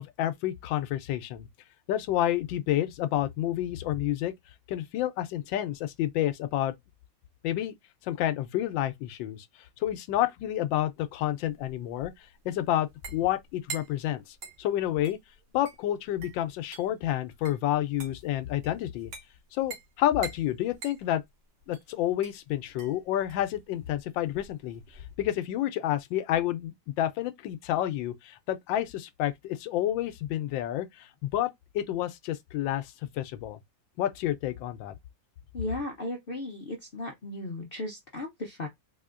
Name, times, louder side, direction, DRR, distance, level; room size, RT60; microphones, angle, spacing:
voice 1, 0.0-1.5 1.9-4.3 4.7-6.7 7.4-7.7 8.0-9.5 9.8-12.1 12.4-15.2 15.5-19.1 19.5-21.2 21.7-24.8 25.2-33.6 34.0-34.9, left 12 dB, 85° left, 1.3 m, -29 dB
sound 1, 11.2-25.2, right 5 dB, 65° right, 1.6 m, -46 dB
voice 2, 35.5-38.7, left 1 dB, 70° left, 0.5 m, -36 dB
4.2 x 2.7 x 2.4 m
omnidirectional pair, 2.0 m